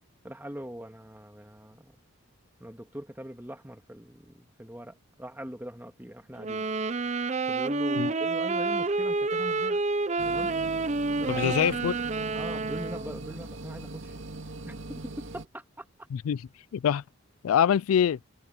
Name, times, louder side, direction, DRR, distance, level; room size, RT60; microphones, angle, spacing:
voice 1, 0.2-1.9 2.6-6.6 7.5-9.8 10.3-10.5 11.2-11.6 12.3-14.1 14.7-15.9, equal, 10° right, 1.8 m, -41 dB
Sax Tenor - A minor, 6.4-13.2, right 3 dB, 30° right, 0.6 m, -29 dB
sound 1, 10.2-15.4, right 2 dB, 65° right, 2.1 m, -41 dB
voice 2, 11.3-11.9 16.1-16.4 16.7-17.0 17.4-18.2, left 8 dB, 85° left, 0.3 m, -24 dB
head